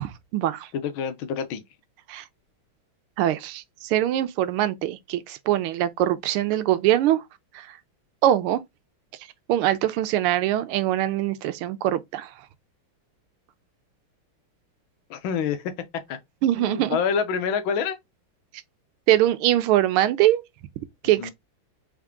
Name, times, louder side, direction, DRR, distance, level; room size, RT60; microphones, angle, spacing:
voice 1, 0.0-0.7 2.1-2.2 3.2-7.2 7.5-7.7 8.2-8.6 9.5-12.3 16.4-17.0 19.1-20.4 21.0-21.3, right 13 dB, 85° right, 1.5 m, -23 dB
voice 2, 0.7-1.6 15.1-15.7 16.1-16.2 16.6-18.0 21.2-21.3, left 7 dB, 75° left, 1.4 m, -27 dB
3.6 x 3.6 x 3.5 m
omnidirectional pair, 2.3 m